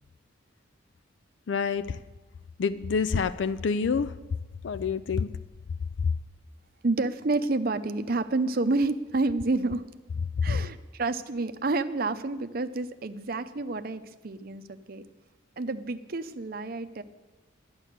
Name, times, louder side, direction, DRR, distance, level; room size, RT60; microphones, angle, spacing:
voice 1, 1.5-2.0 2.6-4.1 4.6-5.3 10.5-10.6, left 5 dB, 65° left, 14 dB, 0.4 m, -27 dB
voice 2, 6.8-9.8 10.4-15.0 15.6-17.0, right 3 dB, 50° right, 10 dB, 0.6 m, -29 dB
12.0 x 9.7 x 6.7 m, 1.1 s
head